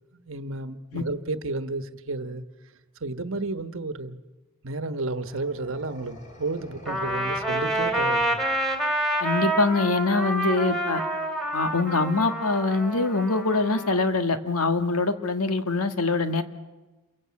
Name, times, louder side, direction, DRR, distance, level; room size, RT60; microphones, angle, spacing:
voice 1, 0.2-2.4 3.0-4.2 4.6-8.4, right 2 dB, 60° right, 1.3 m, -32 dB
sound 1, 5.1-9.0, equal, 35° left, 4.1 m, -48 dB
Trumpet, 6.9-14.0, right 1 dB, ahead, 2.5 m, -28 dB
voice 2, 9.2-11.0 11.5-16.4, left 3 dB, 80° left, 1.6 m, -24 dB
28.5 x 22.0 x 8.6 m
head